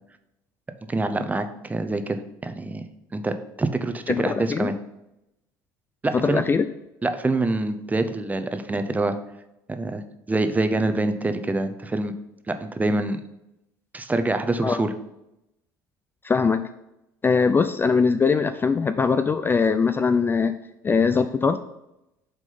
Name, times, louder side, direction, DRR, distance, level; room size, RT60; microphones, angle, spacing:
voice 1, 0.9-2.9 3.1-4.7 6.0-6.4 7.0-9.2 9.7-10.0 10.3-12.1 12.5-13.2 13.9-14.9, right 2 dB, 15° right, 9 dB, 0.7 m, -25 dB
voice 2, 4.1-4.7 6.2-6.7 14.6-14.8 16.2-16.7 17.2-20.5 20.8-21.6, left 5 dB, 25° left, 10 dB, 0.3 m, -21 dB
6.2 x 3.8 x 5.5 m, 0.87 s
supercardioid pair, 80°, 9 cm